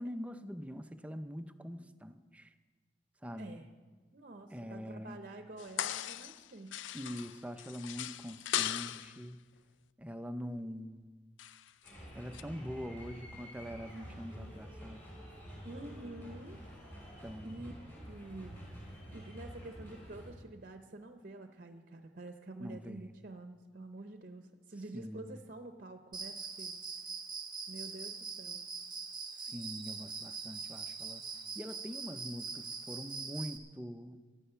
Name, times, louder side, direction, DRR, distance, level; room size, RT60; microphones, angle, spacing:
voice 1, 0.0-2.5 3.2-3.6 4.5-5.2 6.9-9.4 10.0-11.1 12.1-15.1 17.2-17.7 22.6-23.1 24.9-25.4 29.4-31.2 31.6-34.2, equal, 5° right, 9 dB, 0.5 m, -43 dB
voice 2, 3.4-3.7 4.1-6.8 15.6-16.6 17.0-17.1 17.4-17.7 18.1-18.7 19.1-26.8 27.7-28.6, right 2 dB, 50° right, 6 dB, 0.7 m, -48 dB
sound 1, 5.6-6.5 6.7-9.2 11.4-11.9 12.3-12.4, left 12 dB, 85° left, 0.4 m, -38 dB
sound 2, 11.8-20.3, equal, 10° left, 5.2 m, -49 dB
Cricket, 26.1-33.6, right 5 dB, 25° right, 1.1 m, -43 dB
15.0 x 11.5 x 5.6 m, 1.4 s
head